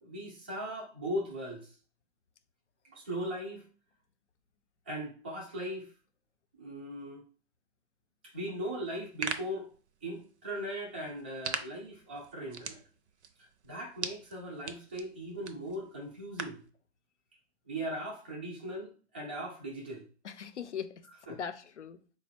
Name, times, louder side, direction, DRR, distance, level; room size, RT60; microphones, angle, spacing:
voice 1, 0.0-1.7 2.8-3.6 4.9-5.9 6.6-7.2 8.3-9.7 10.0-12.8 13.6-16.6 17.7-20.1 21.3-21.4, right 1 dB, 10° right, 0.3 m, -38 dB
sound 1, 8.9-16.7, right 5 dB, 70° right, 0.6 m, -43 dB
voice 2, 20.2-22.2, left 7 dB, 80° left, 0.6 m, -41 dB
4.2 x 2.3 x 3.4 m
figure-of-eight pair, 130°, 35 cm